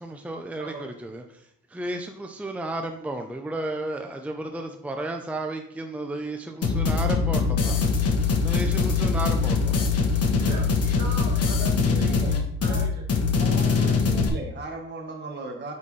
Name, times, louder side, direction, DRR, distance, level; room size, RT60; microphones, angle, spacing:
voice 1, 0.0-7.8 8.4-9.7, right 2 dB, 5° right, 4 dB, 0.6 m, -33 dB
sound 1, 6.6-14.3, left 5 dB, 50° left, 1.3 m, -22 dB
voice 2, 10.3-12.3 12.6-13.0, right 2 dB, 60° right, 0 dB, 2.4 m, -39 dB
voice 3, 11.9-12.8 13.3-15.7, right 2 dB, 35° right, 1 dB, 1.3 m, -37 dB
8.8 x 4.4 x 3.3 m, 0.69 s
cardioid pair, 90°, 30 cm